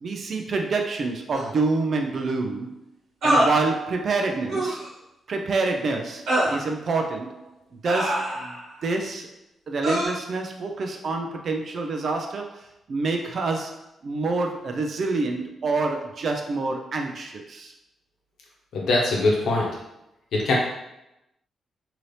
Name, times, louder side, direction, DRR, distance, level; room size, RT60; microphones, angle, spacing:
voice 1, 0.0-2.7 3.2-4.8 5.3-7.5 7.8-9.3 9.7-17.7, right 3 dB, 55° right, 3 dB, 0.5 m, -27 dB
sound 1, 1.3-1.5 3.2-3.6 4.5-4.8 6.3-6.6 7.8-8.6 9.8-10.1, right 1 dB, 80° right, 1.2 m, -23 dB
voice 2, 18.7-19.7 20.3-20.5, left 2 dB, 75° left, -2 dB, 0.9 m, -22 dB
2.8 x 2.6 x 3.3 m, 0.88 s
cardioid pair, 75°, 0 cm